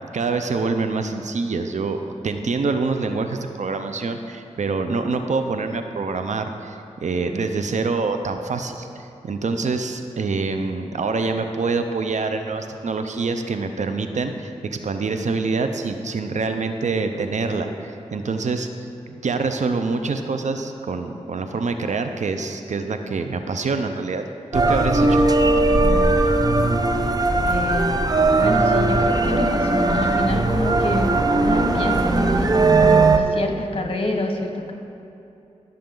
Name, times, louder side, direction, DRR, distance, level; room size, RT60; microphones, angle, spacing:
voice 1, 0.1-18.7 19.1-24.2 24.5-25.2, right 4 dB, 75° right, 7 dB, 0.7 m, -25 dB
sound 1, 24.5-33.2, right 2 dB, 30° right, 0.7 m, -18 dB
voice 2, 27.4-28.0 28.3-31.1 31.4-34.7, left 2 dB, 45° left, 3 dB, 1.4 m, -27 dB
15.5 x 6.9 x 3.9 m, 2.7 s
cardioid pair, 55°, 12 cm